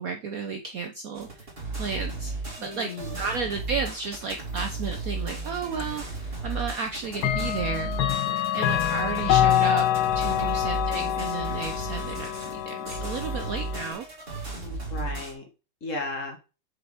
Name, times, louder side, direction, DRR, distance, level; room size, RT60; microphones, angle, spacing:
voice 1, 0.0-1.5 1.7-2.3 2.6-7.9 8.5-9.9 10.1-14.1, right 5 dB, 85° right, 5 dB, 0.7 m, -33 dB
sound 1, 1.1-15.3, right 3 dB, 25° right, 2.6 m, -34 dB
voice 2, 2.6-3.2 10.3-10.6 14.5-15.4 15.8-16.4, left 2 dB, 40° left, 3 dB, 1.6 m, -35 dB
Clock, 5.8-5.9 7.2-13.9, left 12 dB, 75° left, 1.3 m, -26 dB
6.7 x 5.3 x 3.6 m, 0.32 s
omnidirectional pair, 2.4 m